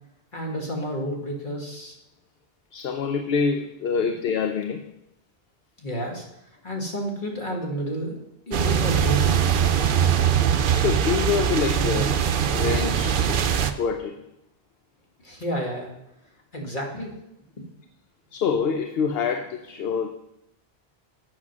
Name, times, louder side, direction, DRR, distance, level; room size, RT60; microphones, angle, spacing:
voice 1, 0.3-2.0 5.8-6.3 6.6-8.2 8.5-9.5 15.2-16.0 16.5-17.1, equal, 50° left, 0 dB, 2.0 m, -30 dB
voice 2, 2.7-4.9 10.2-12.2 12.5-13.4 13.8-14.3 18.3-20.1, left 6 dB, 75° left, 7 dB, 0.8 m, -26 dB
sound 1, 8.5-13.7, right 8 dB, 60° right, 0.7 m, -22 dB
8.5 x 6.2 x 6.0 m, 0.82 s
omnidirectional pair, 1.0 m